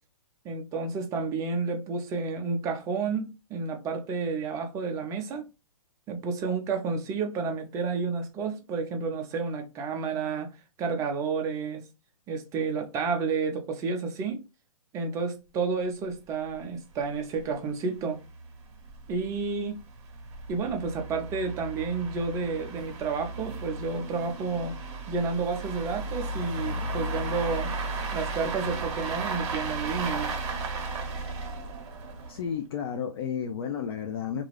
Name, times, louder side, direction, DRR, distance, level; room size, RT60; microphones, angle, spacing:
voice 1, 0.4-5.5 6.1-10.5 10.8-11.8 12.3-14.4 14.9-18.2 19.1-19.8 20.5-24.8 25.1-27.7 28.1-30.3, right 4 dB, 15° right, 0.5 m, -30 dB
sound 1, 16.1-16.2 16.5-16.6 17.0-17.1 17.4-17.5 18.1-32.5, right 3 dB, 55° right, 0.8 m, -35 dB
voice 2, 32.3-34.4, left 7 dB, 40° left, 0.4 m, -32 dB
2.4 x 2.4 x 3.1 m
hypercardioid pair, 135°, 19 cm